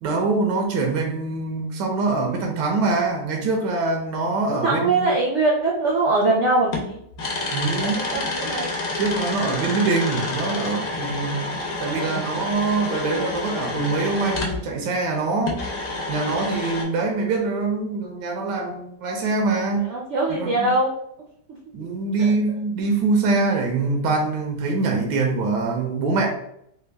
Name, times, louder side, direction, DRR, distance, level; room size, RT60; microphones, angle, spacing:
voice 1, 0.0-5.0 7.5-8.2 9.0-11.5 11.8-15.6 16.1-19.9 20.3-20.7 21.7-26.3, right 3 dB, 85° right, 1 dB, 1.2 m, -24 dB
voice 2, 4.5-7.0 7.8-8.7 9.4-9.9 11.9-12.3 19.7-20.9 22.2-22.3, right 2 dB, 70° right, -2 dB, 0.6 m, -23 dB
sound 1, 6.2-6.3 6.7-14.6 15.4-16.8, left 2 dB, 65° left, 1.2 m, -29 dB
3.5 x 2.2 x 3.3 m, 0.74 s
omnidirectional pair, 1.8 m